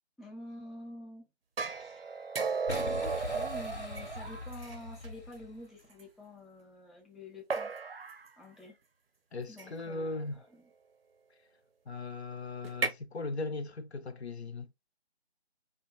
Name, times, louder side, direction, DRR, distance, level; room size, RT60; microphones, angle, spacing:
voice 1, 0.2-1.3 1.8-2.3 2.8-7.7 8.4-8.8 9.5-10.6, left 1 dB, ahead, 0.3 m, -48 dB
sound 1, 1.6-5.1 6.0-6.1 7.5-8.3 9.6-9.9 12.6-12.9, right 4 dB, 60° right, 0.5 m, -35 dB
Boom, 2.7-5.7, left 2 dB, 90° left, 0.9 m, -41 dB
voice 2, 9.3-10.4 11.9-14.7, left 3 dB, 70° left, 0.5 m, -38 dB
2.6 x 2.2 x 2.6 m
figure-of-eight pair, 155°, 33 cm